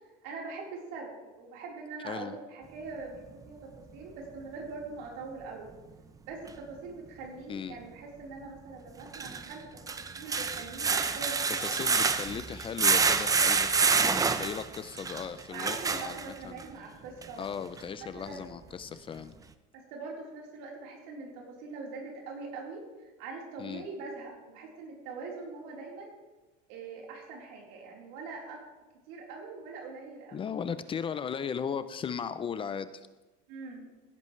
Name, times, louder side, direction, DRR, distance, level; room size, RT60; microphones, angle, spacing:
voice 1, 0.2-5.7 6.2-9.7 10.2-12.0 15.5-17.4 18.0-18.5 19.7-26.1 26.7-28.6 29.1-30.5 33.5-33.9, right 4 dB, 75° right, -2 dB, 4.1 m, -43 dB
sound 1, 6.5-6.6 9.0-16.6 17.2-17.3 17.8-17.9, right 5 dB, 15° right, 0.6 m, -28 dB
voice 2, 11.6-16.6 17.4-19.3 23.6-23.8 30.3-33.1, left 7 dB, 25° left, 12 dB, 0.5 m, -37 dB
16.5 x 10.5 x 3.2 m, 1.2 s
cardioid pair, 130°, 20 cm